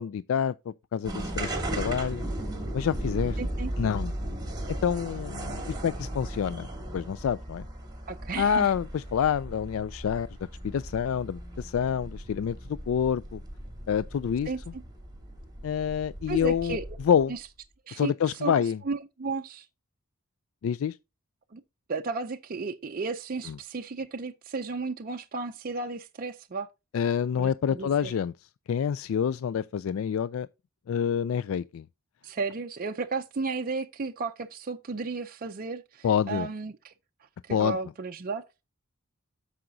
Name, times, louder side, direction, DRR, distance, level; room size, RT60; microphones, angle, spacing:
voice 1, 0.0-2.3 2.7-3.4 3.8-4.2 4.8-6.7 6.9-7.7 8.4-10.3 10.6-13.4 13.9-14.5 15.6-16.8 17.0-17.3 18.0-18.8 20.6-21.0 23.5-23.6 26.9-28.3 28.7-30.5 30.9-31.8 36.0-36.5 37.5-37.8, left 8 dB, 65° left, 0.3 m, -27 dB
sound 1, 1.0-17.2, right 1 dB, 20° right, 2.5 m, -36 dB
voice 2, 3.4-3.7 8.1-8.7 14.5-14.8 16.3-16.9 17.3-17.4 17.9-19.7 21.5-21.6 21.9-26.7 27.4-28.1 32.2-36.9 37.4-38.4, right 4 dB, 40° right, 0.5 m, -34 dB
14.0 x 4.9 x 2.7 m
head